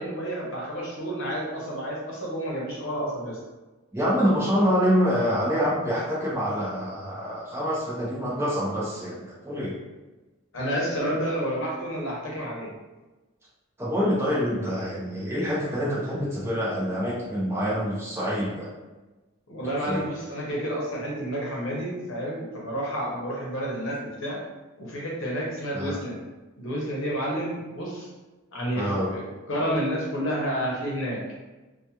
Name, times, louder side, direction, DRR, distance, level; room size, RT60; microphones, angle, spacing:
voice 1, 0.0-3.4 10.5-12.7 19.5-24.4 24.8-26.2 26.6-28.1 28.5-31.2, equal, 70° left, -4 dB, 0.8 m, -30 dB
voice 2, 3.9-9.7 13.8-18.7 19.9-20.0 25.7-26.0 28.7-29.1, equal, 10° right, -6 dB, 0.6 m, -26 dB
2.3 x 2.2 x 2.8 m, 1.2 s
head